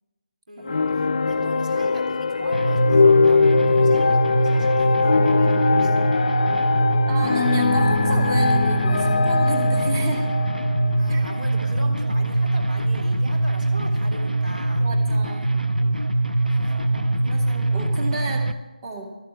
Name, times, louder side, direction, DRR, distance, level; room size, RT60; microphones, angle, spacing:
voice 1, 0.5-6.1 11.0-14.9 16.5-16.9, right 1 dB, 65° right, 1 dB, 3.8 m, -39 dB
sound 1, 0.6-11.9, left 4 dB, 55° left, 0.5 m, -21 dB
sound 2, 2.5-18.5, right 2 dB, 90° right, 0.7 m, -22 dB
voice 2, 7.1-10.3 11.1-11.2 11.9-12.2 14.8-15.5 16.4-18.5 18.8-19.1, right 2 dB, 30° right, 1 dB, 2.2 m, -33 dB
14.0 x 8.4 x 7.4 m, 1.1 s
figure-of-eight pair, 155°, 5 cm